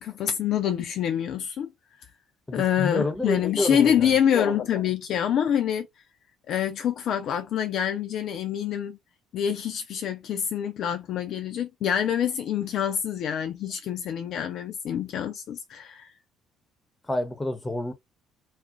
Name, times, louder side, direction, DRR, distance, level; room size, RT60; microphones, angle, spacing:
voice 1, 0.0-1.7 2.5-5.9 6.5-9.0 9.3-16.1, left 9 dB, 55° left, 0.3 m, -26 dB
voice 2, 2.5-4.2 17.0-17.9, left 2 dB, 15° left, 0.7 m, -28 dB
2.4 x 2.1 x 2.5 m
figure-of-eight pair, 55°, 0 cm